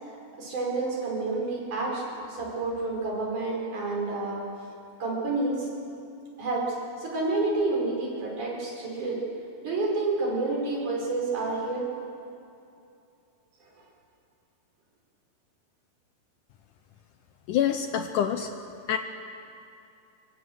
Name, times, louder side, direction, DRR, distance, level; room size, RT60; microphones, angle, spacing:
voice 1, 0.0-4.4 5.0-5.7 6.4-9.2 9.6-11.9, right 3 dB, 55° right, -2 dB, 6.6 m, -29 dB
voice 2, 17.5-18.5 18.9-19.0, left 9 dB, 70° left, 7 dB, 2.1 m, -26 dB
25.0 x 24.5 x 8.1 m, 2.7 s
omnidirectional pair, 4.3 m